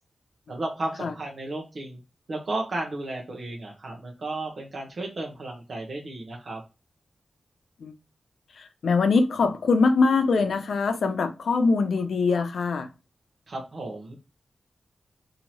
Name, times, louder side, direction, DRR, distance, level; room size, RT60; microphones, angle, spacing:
voice 1, 0.5-2.0 2.3-6.6 13.5-14.2, right 2 dB, 65° right, 0.8 m, -33 dB
voice 2, 8.6-12.9, left 4 dB, 85° left, 0.6 m, -23 dB
4.1 x 2.7 x 3.0 m
wide cardioid pair, 80°, 0 cm